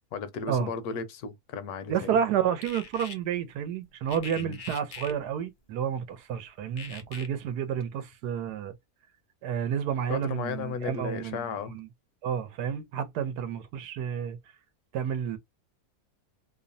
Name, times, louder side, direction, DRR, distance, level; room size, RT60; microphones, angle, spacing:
voice 1, 0.1-2.1 4.4-4.6 10.1-11.7, left 6 dB, 75° left, 1.1 m, -35 dB
voice 2, 1.9-8.7 9.4-11.9 12.2-14.4 14.9-15.4, right 8 dB, 90° right, 1.2 m, -30 dB
sound 1, 2.6-3.1 4.1-5.1 6.8-7.3, left 5 dB, 50° left, 0.6 m, -41 dB
3.0 x 2.0 x 2.5 m
omnidirectional pair, 1.7 m